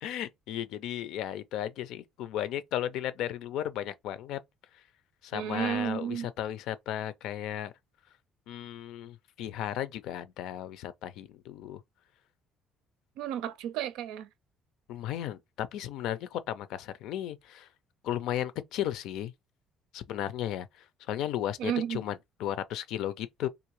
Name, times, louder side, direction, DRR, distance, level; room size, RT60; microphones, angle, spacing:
voice 1, 0.0-4.4 5.2-7.7 8.5-11.8 14.9-17.7 18.0-19.3 19.9-23.5, left 11 dB, 70° left, 0.5 m, -35 dB
voice 2, 5.3-6.3 13.2-14.3 21.6-22.0, right 9 dB, 85° right, 0.5 m, -32 dB
3.6 x 2.7 x 3.0 m
cardioid pair, 155°, 0 cm